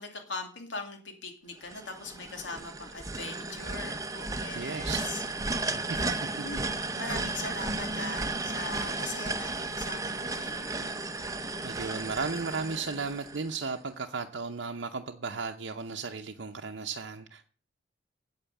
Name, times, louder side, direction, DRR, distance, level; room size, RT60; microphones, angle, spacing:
voice 1, 0.0-10.9, left 3 dB, 80° left, 4 dB, 2.4 m, -41 dB
sound 1, 1.7-13.8, right 3 dB, 20° right, 0.7 m, -34 dB
voice 2, 4.5-5.0 5.9-6.2 11.6-17.5, right 4 dB, 70° right, 3 dB, 0.7 m, -35 dB
8.8 x 8.1 x 7.1 m, 0.42 s
head